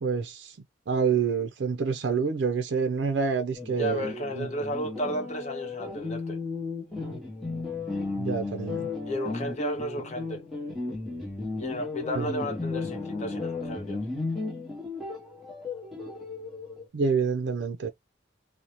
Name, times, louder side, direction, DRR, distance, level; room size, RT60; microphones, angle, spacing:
voice 1, 0.0-0.6 0.9-4.1 4.4-4.5 8.2-8.8 12.1-12.3 16.9-17.9, right 5 dB, 65° right, 0.4 m, -27 dB
sound 1, 3.6-16.8, left 3 dB, ahead, 0.9 m, -34 dB
voice 2, 3.7-6.4 9.1-10.4 11.5-14.0, equal, 35° left, 0.9 m, -33 dB
2.7 x 2.1 x 2.9 m
head